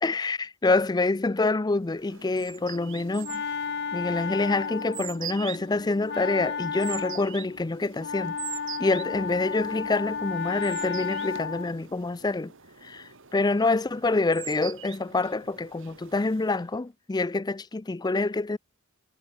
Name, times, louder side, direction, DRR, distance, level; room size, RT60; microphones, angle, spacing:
voice 1, 0.0-3.4 3.9-8.4 8.8-12.5 12.8-18.6, left 3 dB, 20° left, 0.4 m, -26 dB
sound 1, 1.8-16.8, right 11 dB, 60° right, 3.2 m, -44 dB
Wind instrument woodwind instrument, 2.7-11.8, left 6 dB, 50° left, 1.1 m, -33 dB
head